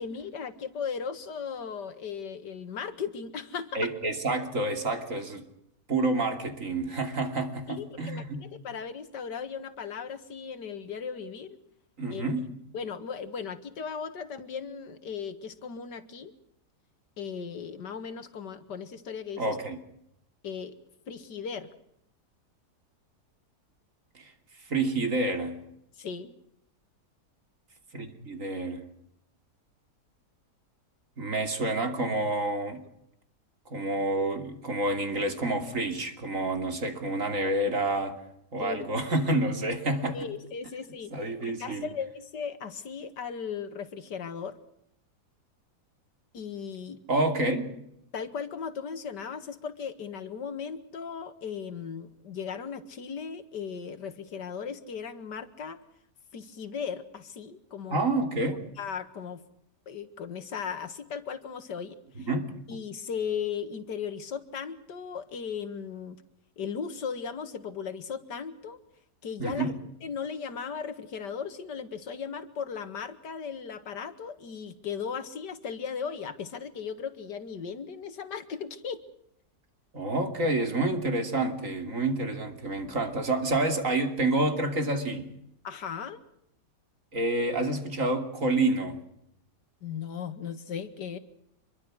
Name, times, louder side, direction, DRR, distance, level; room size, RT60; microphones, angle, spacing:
voice 1, 0.0-3.9 7.7-11.6 12.1-12.2 12.7-16.3 17.2-19.6 20.4-20.8 21.1-21.7 26.0-26.3 38.6-38.9 40.1-41.1 41.4-44.6 46.3-47.0 48.1-55.8 56.3-58.1 58.8-59.4 59.9-62.3 62.7-66.2 66.6-68.8 69.2-69.7 70.0-79.0 85.6-86.2 89.8-91.2, left 6 dB, 90° left, 11 dB, 2.2 m, -37 dB
voice 2, 3.7-5.4 5.9-8.4 12.0-12.5 19.4-19.8 24.1-24.3 24.7-25.6 27.9-28.9 31.2-32.8 33.7-38.2 38.5-40.2 41.1-41.9 47.1-47.8 57.9-58.6 62.2-62.5 69.4-69.7 79.9-85.3 87.1-88.9, right 2 dB, 50° right, 6 dB, 3.2 m, -28 dB
25.5 x 22.5 x 6.3 m, 0.78 s
omnidirectional pair, 1.8 m